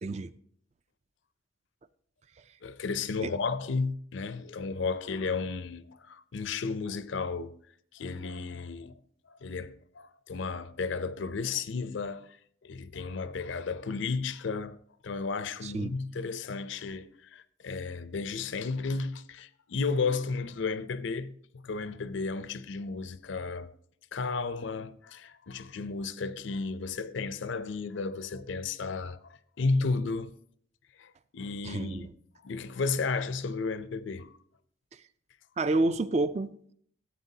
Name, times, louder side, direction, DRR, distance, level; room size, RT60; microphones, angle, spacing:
voice 1, 2.6-7.6 7.9-9.0 9.3-12.4 12.6-14.8 15.0-23.7 24.1-30.3 31.0-32.1 32.4-34.3, left 4 dB, 65° left, 0.5 m, -33 dB
voice 2, 15.6-15.9 31.6-32.1 35.6-36.7, right 2 dB, 35° right, 0.3 m, -29 dB
13.5 x 8.6 x 2.8 m
head